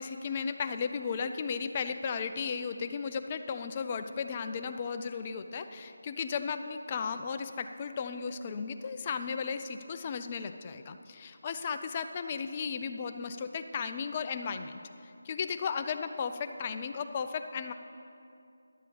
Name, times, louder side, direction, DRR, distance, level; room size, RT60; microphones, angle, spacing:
voice 1, 0.0-17.7, left 6 dB, 25° left, 8 dB, 0.4 m, -35 dB
11.0 x 7.5 x 6.9 m, 2.6 s
figure-of-eight pair, 165°, 0 cm